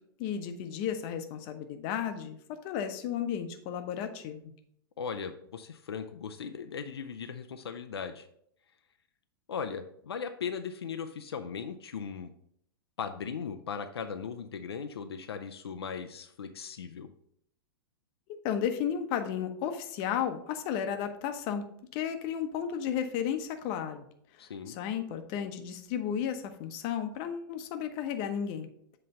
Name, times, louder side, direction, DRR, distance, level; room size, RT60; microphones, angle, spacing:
voice 1, 0.2-2.4 2.6-4.5 18.4-24.0 24.3-28.7, left 8 dB, 45° left, 7 dB, 0.9 m, -33 dB
voice 2, 5.0-8.3 9.5-12.3 13.0-17.1 24.4-24.8, left 6 dB, 85° left, 7 dB, 0.5 m, -38 dB
7.7 x 3.3 x 5.3 m, 0.69 s
hypercardioid pair, 115°, 13 cm